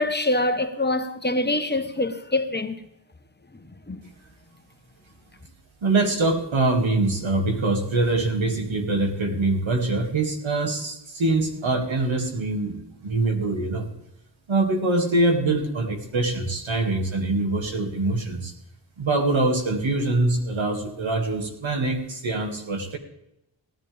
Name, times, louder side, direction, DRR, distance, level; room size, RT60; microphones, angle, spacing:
voice 1, 0.0-2.8 3.9-4.0, left 2 dB, 20° left, 1.2 m, -24 dB
voice 2, 5.8-13.9 14.5-18.5 19.0-23.0, right 2 dB, 80° right, 2.4 m, -24 dB
17.5 x 11.0 x 3.5 m
cardioid pair, 55°, 46 cm